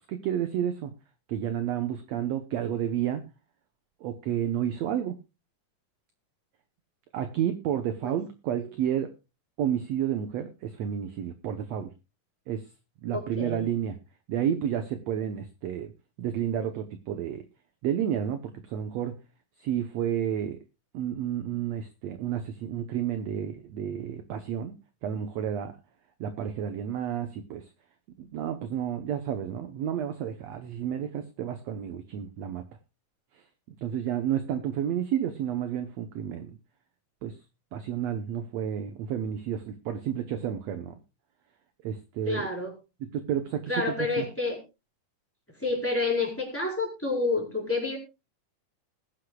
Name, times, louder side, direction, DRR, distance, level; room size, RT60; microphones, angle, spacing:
voice 1, 0.1-0.9 1.3-3.2 4.0-5.2 7.1-9.1 9.6-11.9 12.5-12.6 13.0-14.0 14.3-15.9 16.2-17.5 17.8-19.2 19.6-20.6 20.9-24.7 25.0-25.8 26.2-27.7 28.2-32.6 33.8-36.5 37.2-37.3 37.7-41.0 41.8-42.5 43.0-44.3, right 9 dB, 65° right, 8 dB, 1.8 m, -31 dB
voice 2, 13.1-13.7 42.3-42.7 43.7-44.6 45.6-48.0, left 3 dB, 5° left, -1 dB, 4.3 m, -29 dB
20.5 x 10.0 x 2.3 m, 0.27 s
omnidirectional pair, 3.8 m